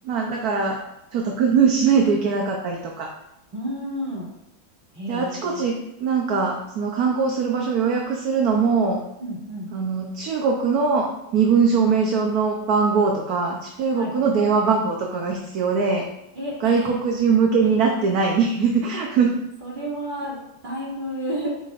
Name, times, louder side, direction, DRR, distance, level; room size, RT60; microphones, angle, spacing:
voice 1, 0.0-0.8 1.1-3.1 5.1-9.0 9.7-16.1 16.6-19.3, right 5 dB, 60° right, 1 dB, 1.1 m, -21 dB
voice 2, 3.5-4.3 4.9-5.6 9.2-9.7 13.9-14.1 16.3-16.9 18.9-19.0 19.6-21.5, equal, 25° right, -6 dB, 2.5 m, -31 dB
11.5 x 5.2 x 2.5 m, 0.87 s
omnidirectional pair, 2.1 m